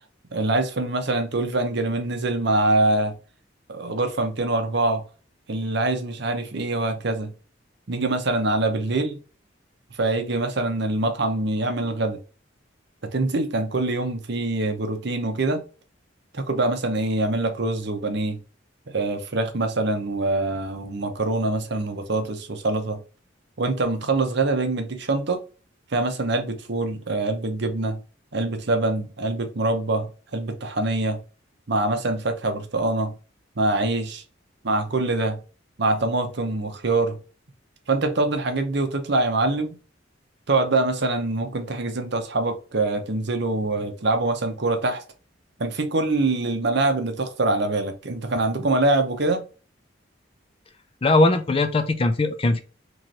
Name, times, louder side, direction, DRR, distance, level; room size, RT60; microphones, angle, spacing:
voice 1, 0.3-3.2 3.7-5.0 5.5-7.3 7.9-9.2 10.0-12.2 13.1-15.6 16.3-18.4 18.9-23.0 23.6-25.4 25.9-28.0 28.3-31.2 31.7-33.1 33.6-34.2 34.6-35.4 35.8-37.2 37.9-39.8 40.5-45.0 45.6-49.4, right 2 dB, 60° right, 0.8 m, -24 dB
voice 2, 51.0-52.6, left 2 dB, 30° left, 0.4 m, -20 dB
3.1 x 3.1 x 3.9 m
head